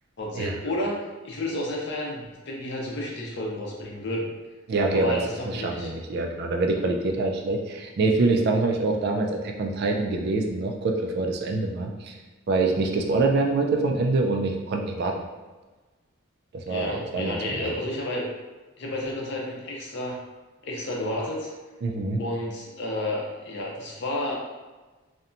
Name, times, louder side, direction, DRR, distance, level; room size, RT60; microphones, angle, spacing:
voice 1, 0.2-4.3 4.9-5.9 16.7-18.3 18.8-20.2 20.6-21.5 22.2-24.3, left 1 dB, 55° left, -2 dB, 0.5 m, -31 dB
voice 2, 4.7-12.1 12.5-15.2 16.5-17.7 21.8-22.2, right 3 dB, 50° right, 2 dB, 0.3 m, -25 dB
2.8 x 2.1 x 2.5 m, 1.2 s
head